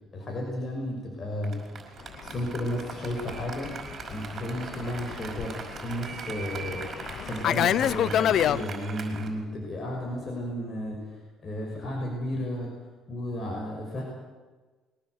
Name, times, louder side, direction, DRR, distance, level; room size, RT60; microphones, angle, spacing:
voice 1, 0.1-1.5 1.9-3.7 4.1-6.9 7.2-12.7 13.1-14.0, left 1 dB, 35° left, -1 dB, 6.3 m, -33 dB
Applause, 1.4-9.3, right 5 dB, 40° right, 5.3 m, -41 dB
Fixed-wing aircraft airplane, 2.1-8.6, left 10 dB, 60° left, 0.7 m, -29 dB
22.5 x 18.0 x 8.2 m, 1.3 s
cardioid pair, 110°, 0 cm